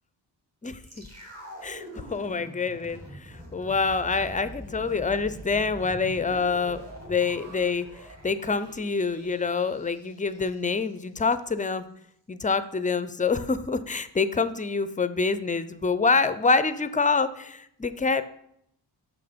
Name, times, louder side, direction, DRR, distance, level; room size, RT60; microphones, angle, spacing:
sound 1, 0.8-11.0 11.2-11.3, right 1 dB, 35° right, 2.5 m, -44 dB
voice 1, 1.6-3.0 3.5-6.8 7.1-7.9 8.2-11.9 12.3-18.2, left 4 dB, 20° left, 13 dB, 0.4 m, -26 dB
6.0 x 5.8 x 5.0 m, 0.72 s
wide cardioid pair, 90°, 44 cm